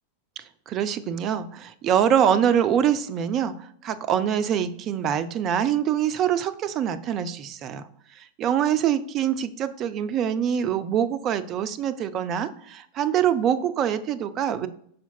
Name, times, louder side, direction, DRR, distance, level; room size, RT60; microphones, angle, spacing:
voice 1, 0.7-7.9 8.2-14.7, right 9 dB, 35° right, 12 dB, 0.5 m, -24 dB
5.6 x 5.0 x 4.4 m, 0.65 s
figure-of-eight pair, 90°, 0 cm